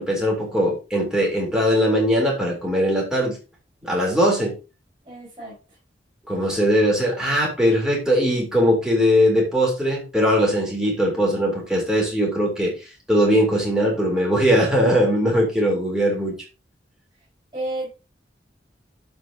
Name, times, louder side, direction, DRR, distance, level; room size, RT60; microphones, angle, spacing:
voice 1, 0.0-3.4 3.8-4.5 6.3-12.7 13.1-16.3, equal, 5° right, -3 dB, 3.8 m, -20 dB
voice 2, 5.0-5.8 17.5-17.9, right 1 dB, 25° right, -9 dB, 5.5 m, -31 dB
12.0 x 5.3 x 2.9 m, 0.30 s
head